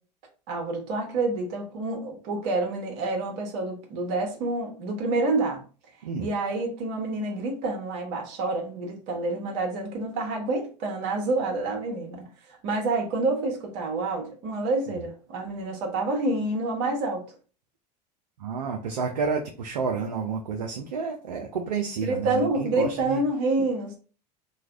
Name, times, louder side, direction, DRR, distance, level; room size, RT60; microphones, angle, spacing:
voice 1, 0.5-5.6 6.2-17.2 22.0-24.0, right 2 dB, 60° right, 1 dB, 1.2 m, -28 dB
voice 2, 18.4-23.2, right 5 dB, 85° right, 2 dB, 0.5 m, -30 dB
3.1 x 2.3 x 3.5 m, 0.38 s
hypercardioid pair, 80°, 21 cm